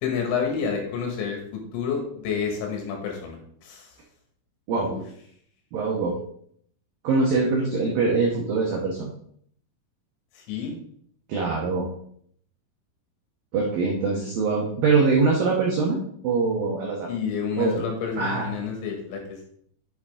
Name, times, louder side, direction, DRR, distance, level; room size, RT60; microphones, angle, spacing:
voice 1, 0.0-3.9 4.8-5.0 10.4-10.8 17.1-19.4, left 6 dB, 75° left, 2 dB, 4.0 m, -29 dB
voice 2, 5.7-6.2 7.0-9.1 11.3-11.9 13.5-17.1 17.6-17.8 18.2-18.5, right 4 dB, 80° right, -1 dB, 2.0 m, -23 dB
8.7 x 7.2 x 3.7 m, 0.66 s
omnidirectional pair, 5.9 m